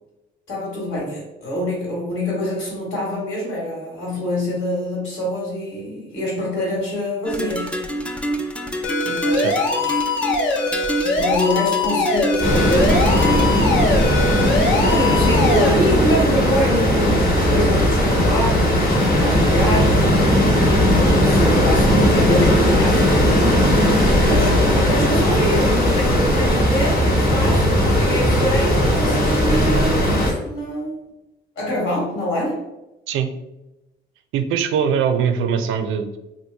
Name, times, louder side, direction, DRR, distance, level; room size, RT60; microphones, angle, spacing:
voice 1, 0.5-7.7 9.0-10.0 11.2-14.5 14.8-20.2 20.9-23.3 24.0-31.0 31.5-32.6, equal, 85° left, -4 dB, 1.5 m, -25 dB
sound 1, 7.3-13.5, equal, 5° left, 0.3 m, -26 dB
sound 2, 8.8-15.7, left 3 dB, 70° left, 0.6 m, -22 dB
sound 3, 12.4-30.3, equal, 50° left, 1.0 m, -17 dB
voice 2, 34.3-36.2, right 7 dB, 85° right, 7 dB, 0.4 m, -21 dB
3.0 x 2.3 x 3.3 m, 0.95 s
cardioid pair, 90°, 20 cm